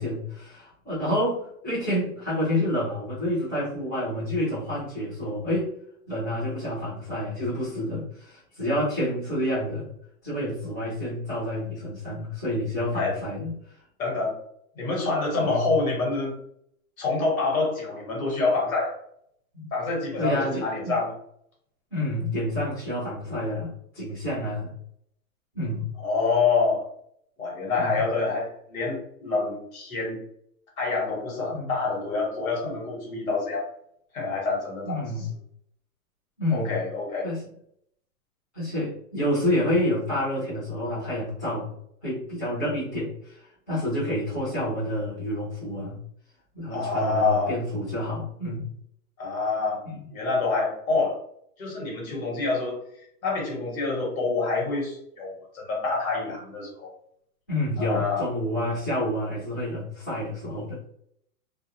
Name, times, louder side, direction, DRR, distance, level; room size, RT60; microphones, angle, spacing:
voice 1, 0.0-5.7 6.1-9.9 10.2-13.5 15.4-15.7 19.5-19.7 20.2-21.0 21.9-24.7 25.5-25.9 27.8-28.0 31.5-31.7 34.8-35.3 36.4-36.7 37.2-37.4 38.5-41.7 42.0-46.0 46.5-48.6 49.8-50.1 57.5-60.8, left 1 dB, 10° left, -18 dB, 0.5 m, -28 dB
voice 2, 14.0-14.3 14.7-16.4 17.0-18.9 19.7-21.1 26.0-26.8 27.4-30.2 30.8-33.7 34.1-35.0 36.5-37.3 46.7-47.5 49.2-49.8 50.1-51.2 51.6-52.8 53.2-56.9 57.8-58.2, left 3 dB, 60° left, -3 dB, 1.4 m, -26 dB
2.3 x 2.3 x 2.7 m, 0.70 s
hypercardioid pair, 180°, 46 cm